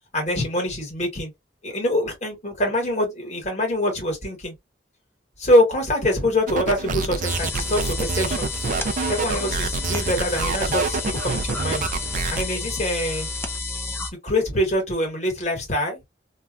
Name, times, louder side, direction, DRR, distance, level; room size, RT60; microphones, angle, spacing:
voice 1, 0.1-1.3 1.6-4.5 5.4-8.5 9.1-11.8 12.3-13.3 14.2-16.0, left 1 dB, 40° left, 1.6 m, -24 dB
sound 1, 6.5-12.4, right 4 dB, 45° right, 0.4 m, -27 dB
sound 2, 7.3-14.1, left 3 dB, 15° left, 0.5 m, -30 dB
2.9 x 2.3 x 2.4 m
head